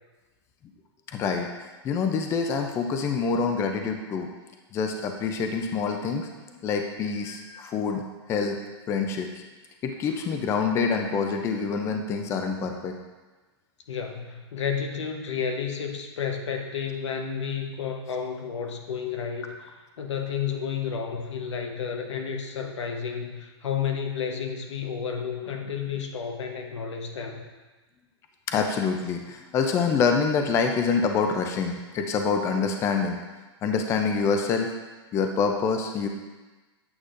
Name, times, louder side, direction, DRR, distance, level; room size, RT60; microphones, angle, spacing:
voice 1, 1.1-1.5 1.8-4.3 4.7-6.3 6.6-8.0 8.3-8.6 8.9-9.3 9.8-13.0 28.5-33.2 33.6-34.7 35.1-36.1, left 5 dB, 20° left, 4 dB, 0.4 m, -26 dB
voice 2, 13.9-27.4, left 7 dB, 80° left, 3 dB, 1.0 m, -31 dB
8.5 x 6.6 x 2.5 m, 1.2 s
hypercardioid pair, 145°, 15 cm